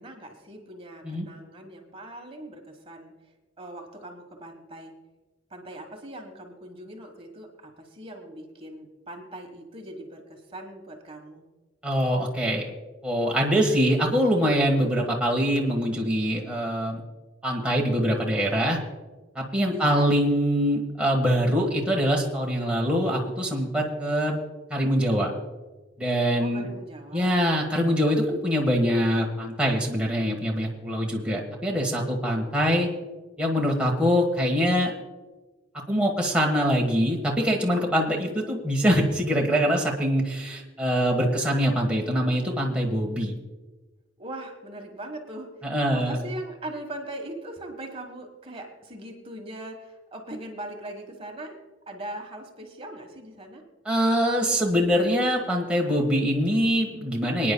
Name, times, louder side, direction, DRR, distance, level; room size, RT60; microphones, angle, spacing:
voice 1, 0.0-3.1 3.6-4.9 5.5-11.4 19.7-20.1 26.4-27.4 44.2-45.5 45.9-51.6 51.9-53.6, right 1 dB, 30° right, 3 dB, 1.4 m, -40 dB
voice 2, 11.8-12.7 13.0-17.0 17.4-18.8 19.3-24.4 24.7-25.3 26.0-26.7 27.1-32.9 33.4-34.9 35.9-43.4 45.7-46.2 53.8-57.5, equal, 5° right, -2 dB, 1.4 m, -24 dB
26.0 x 9.7 x 2.3 m, 1.2 s
head